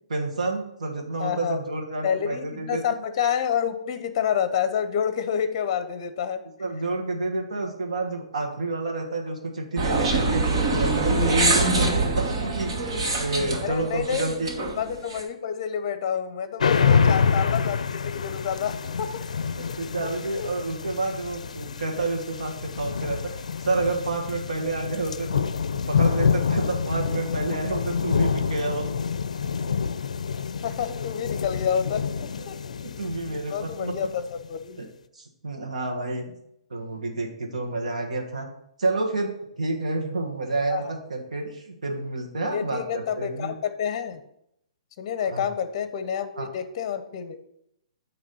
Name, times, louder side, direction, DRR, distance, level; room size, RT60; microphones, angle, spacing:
voice 1, 0.1-2.8 6.6-14.5 16.8-17.0 19.8-25.4 25.7-28.8 33.0-33.9 34.8-34.9 35.1-36.3 36.7-38.5 38.8-43.5 45.2-45.5 46.4-46.5, right 2 dB, 85° right, 1 dB, 1.4 m, -29 dB
voice 2, 1.2-1.6 2.0-6.4 13.6-19.1 19.6-19.7 20.3-20.5 30.6-32.0 32.5-32.6 33.3-34.8 40.7-40.9 42.4-44.2 45.0-47.5, left 8 dB, 40° left, 10 dB, 0.7 m, -28 dB
sound 1, 9.8-15.2, right 2 dB, 55° right, 1.8 m, -24 dB
sound 2, 16.6-34.4, left 6 dB, 80° left, 0.4 m, -27 dB
9.2 x 3.1 x 5.4 m, 0.77 s
hypercardioid pair, 145°, 4 cm